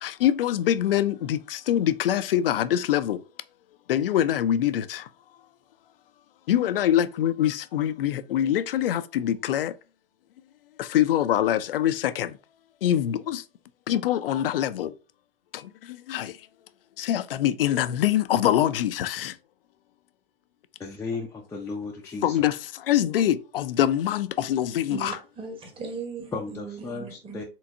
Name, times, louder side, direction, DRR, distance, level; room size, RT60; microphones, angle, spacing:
voice 1, 0.0-3.2 3.9-5.1 6.5-9.7 10.8-12.4 12.8-13.4 13.9-14.9 15.5-16.4 17.0-19.4 22.2-25.1, left 11 dB, 65° left, 0.5 m, -24 dB
voice 2, 20.8-22.4 26.3-27.4, left 4 dB, 10° left, 0.5 m, -35 dB
voice 3, 24.9-27.4, right 5 dB, 15° right, 1.3 m, -38 dB
4.4 x 3.7 x 2.7 m
figure-of-eight pair, 100°, 31 cm